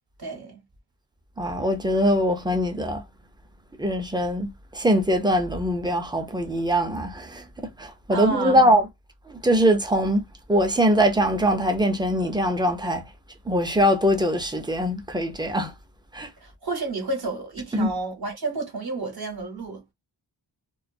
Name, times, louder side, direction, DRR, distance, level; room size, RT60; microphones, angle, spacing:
voice 1, 0.2-0.6 8.1-8.6 16.4-19.9, right 3 dB, 55° right, 0.7 m, -31 dB
voice 2, 1.4-3.0 3.8-7.4 7.8-8.8 9.3-10.2 10.5-13.0 13.5-15.7 16.1-16.3 17.7-17.9, equal, 10° right, 0.4 m, -22 dB
2.2 x 2.2 x 2.5 m
wide cardioid pair, 110°, 44 cm